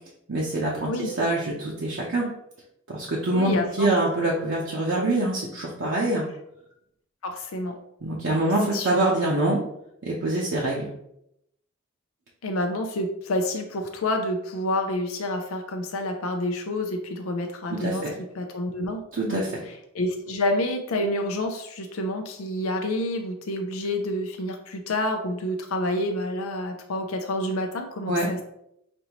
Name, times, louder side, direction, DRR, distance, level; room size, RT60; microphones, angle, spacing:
voice 1, 0.3-2.3 2.9-6.2 8.0-9.6 10.0-10.9 17.7-18.1 19.1-19.5 28.1-28.3, right 2 dB, 65° right, -4 dB, 0.7 m, -25 dB
voice 2, 3.3-3.9 7.2-7.8 8.7-9.0 12.4-18.0 18.3-19.0 19.3-28.4, left 1 dB, 85° left, 4 dB, 0.5 m, -28 dB
5.2 x 2.6 x 2.9 m, 0.78 s
head